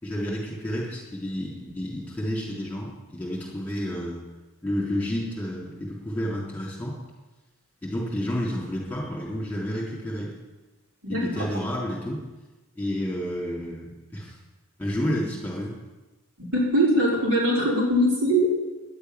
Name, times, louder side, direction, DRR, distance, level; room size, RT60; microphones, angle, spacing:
voice 1, 0.0-4.2 4.6-7.0 7.8-10.3 11.1-12.2 12.8-14.4 14.8-15.7, equal, 5° left, -5 dB, 3.6 m, -30 dB
voice 2, 16.5-18.6, equal, 65° right, -5 dB, 5.3 m, -21 dB
11.0 x 8.1 x 9.9 m, 1.2 s
head